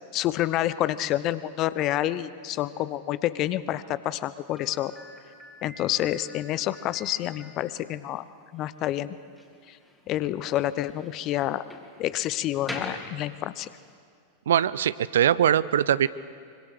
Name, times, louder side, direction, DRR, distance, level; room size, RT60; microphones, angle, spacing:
voice 1, 0.1-4.9 5.6-8.2 8.5-9.2 9.7-9.8 10.1-11.6 12.0-13.7, left 13 dB, 35° left, 16 dB, 0.8 m, -28 dB
Slam, 4.5-13.8, left 1 dB, 5° left, 3.2 m, -45 dB
voice 2, 14.5-16.1, right 10 dB, 60° right, 19 dB, 0.5 m, -21 dB
25.0 x 24.5 x 6.6 m, 2.2 s
figure-of-eight pair, 90°, 0 cm